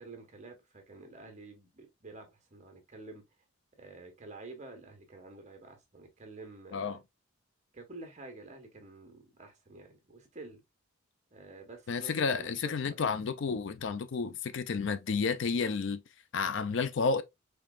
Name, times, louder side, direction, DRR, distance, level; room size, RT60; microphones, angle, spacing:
voice 1, 0.0-3.2 3.8-7.0 7.7-10.6 11.3-13.0, right 3 dB, 35° right, 1.3 m, -49 dB
voice 2, 11.9-16.0 16.3-17.2, left 5 dB, 60° left, 0.4 m, -31 dB
5.0 x 3.1 x 2.3 m
head